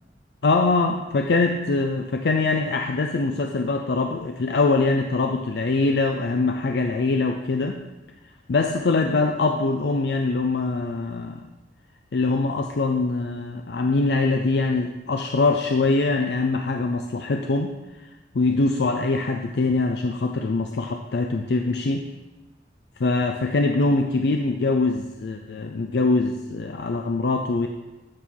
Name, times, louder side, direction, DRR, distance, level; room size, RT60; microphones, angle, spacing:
voice 1, 0.4-7.8 8.5-11.4 12.1-17.7 18.0-22.0 23.0-27.7, left 3 dB, 75° left, 4 dB, 0.5 m, -23 dB
9.0 x 4.6 x 5.4 m, 1.1 s
head